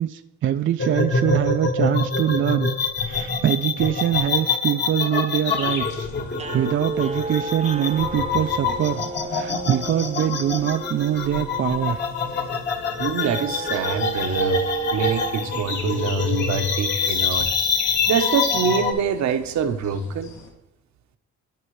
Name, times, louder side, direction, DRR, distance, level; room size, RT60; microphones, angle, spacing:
voice 1, 0.0-2.7 3.0-9.0 9.3-12.0, right 11 dB, 40° right, 8 dB, 0.4 m, -24 dB
sound 1, 0.8-18.9, left 4 dB, 35° left, 1.1 m, -25 dB
sound 2, 5.4-20.5, left 5 dB, 70° left, 1.6 m, -37 dB
sound 3, 6.3-16.6, right 2 dB, 20° right, 0.8 m, -35 dB
voice 2, 13.0-14.6 14.9-17.5 18.1-20.3, right 6 dB, 65° right, 8 dB, 0.9 m, -25 dB
13.0 x 5.4 x 3.1 m, 0.96 s
cardioid pair, 90°, 30 cm